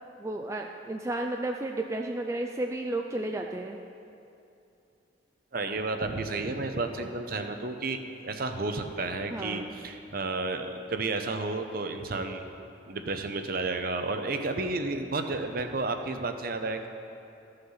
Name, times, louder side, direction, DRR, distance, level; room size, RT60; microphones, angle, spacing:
voice 1, 0.2-3.8 7.0-7.1 9.3-9.8, right 2 dB, 15° right, 3 dB, 0.3 m, -33 dB
voice 2, 5.5-8.0 8.2-12.5 12.9-16.9, right 3 dB, 50° right, 7 dB, 0.7 m, -32 dB
14.0 x 6.7 x 5.6 m, 2.7 s
head